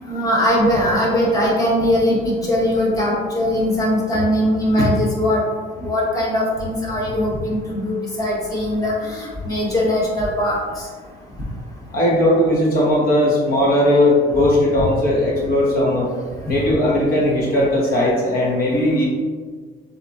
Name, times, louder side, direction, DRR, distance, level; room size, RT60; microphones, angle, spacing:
voice 1, 0.0-5.4 5.8-10.6 16.5-16.6, left 1 dB, 20° left, -5 dB, 1.4 m, -20 dB
voice 2, 11.9-16.1 16.5-19.1, left 1 dB, 60° left, -4 dB, 1.2 m, -17 dB
6.5 x 2.8 x 3.0 m, 1.5 s
cardioid pair, 110°, 17 cm